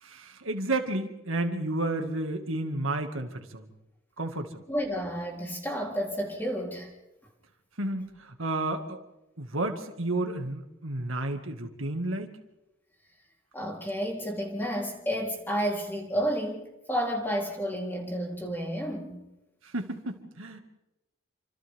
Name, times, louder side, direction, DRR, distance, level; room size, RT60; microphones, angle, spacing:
voice 1, 0.0-3.7 4.2-4.6 7.8-9.0 9.4-12.3 19.6-20.6, right 2 dB, 80° right, 5 dB, 2.3 m, -31 dB
voice 2, 4.7-6.9 13.5-19.2, equal, 10° left, -1 dB, 3.9 m, -31 dB
28.5 x 26.5 x 3.7 m, 0.97 s
head